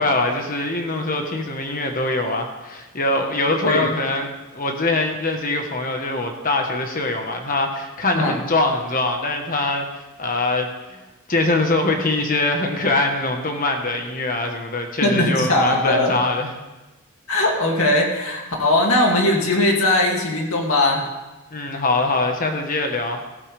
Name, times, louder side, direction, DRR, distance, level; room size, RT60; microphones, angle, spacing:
voice 1, 0.0-4.3 4.5-9.9 10.2-11.0 11.3-16.5 21.5-23.2, left 2 dB, 40° left, 3 dB, 1.3 m, -23 dB
voice 2, 15.0-16.2 17.3-21.1, left 1 dB, 70° left, 0 dB, 2.6 m, -19 dB
14.5 x 14.0 x 3.5 m, 1.1 s
head